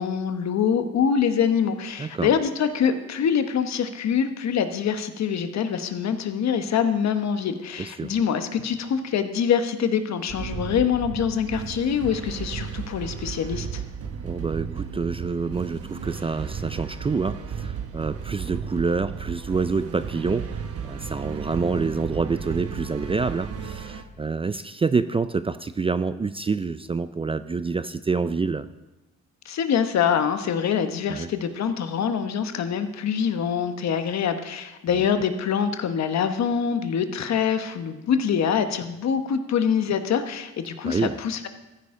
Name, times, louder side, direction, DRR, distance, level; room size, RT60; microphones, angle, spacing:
voice 1, 0.0-13.8 29.4-41.5, left 7 dB, 60° left, 9 dB, 1.1 m, -25 dB
voice 2, 2.0-2.3 7.8-8.1 14.2-28.7 31.1-31.3 40.8-41.2, right 4 dB, 20° right, 12 dB, 0.4 m, -27 dB
sound 1, 10.3-24.0, right 7 dB, 50° right, 1.1 m, -34 dB
14.5 x 9.7 x 3.7 m, 1.1 s
cardioid pair, 90°, 30 cm